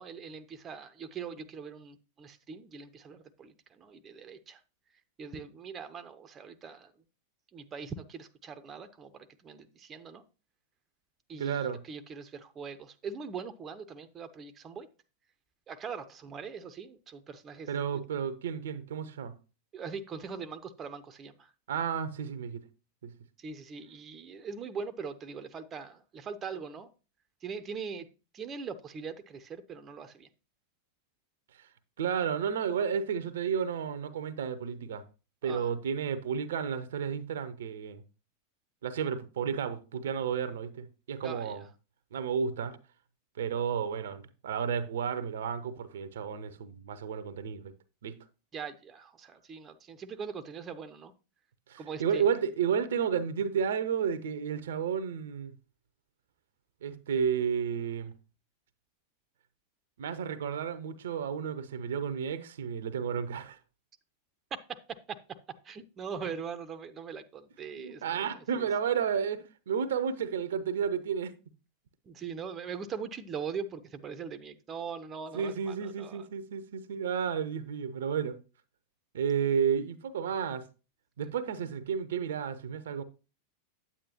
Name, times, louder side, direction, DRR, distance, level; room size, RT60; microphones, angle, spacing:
voice 1, 0.0-4.6 5.2-6.9 7.5-10.2 11.3-11.6 11.9-14.9 15.7-17.7 19.7-21.3 23.4-26.9 27.4-28.1 28.3-30.3 35.4-35.7 41.2-41.6 48.5-51.1 51.8-52.2 65.6-68.3 68.6-68.7 72.1-76.3, right 6 dB, 25° right, 0.6 m, -41 dB
voice 2, 11.4-11.8 17.7-19.3 21.7-22.6 23.0-23.1 31.6-31.7 32.0-35.0 35.4-38.0 38.8-41.7 42.1-42.8 43.4-47.7 48.0-48.2 51.7-55.5 56.8-58.1 60.0-63.6 67.8-71.3 75.3-78.4 79.1-80.7 81.2-83.0, right 7 dB, 60° right, 0.7 m, -32 dB
8.8 x 8.5 x 2.8 m
figure-of-eight pair, 90°, 0 cm